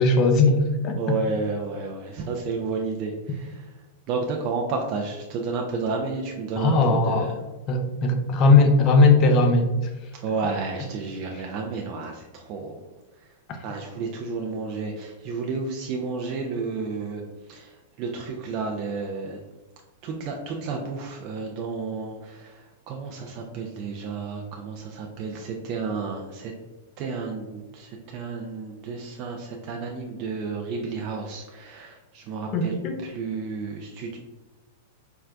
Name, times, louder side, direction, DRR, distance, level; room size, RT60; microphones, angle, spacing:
voice 1, 0.0-1.0 6.6-7.3 7.7-9.7 32.5-33.0, left 3 dB, 40° left, 5 dB, 0.6 m, -18 dB
voice 2, 1.0-7.4 10.1-12.8 13.1-19.4 20.0-26.5 27.0-32.8 33.0-34.2, right 4 dB, 45° right, 1 dB, 0.4 m, -32 dB
4.5 x 2.1 x 2.5 m, 1.1 s
hypercardioid pair, 110°, 0 cm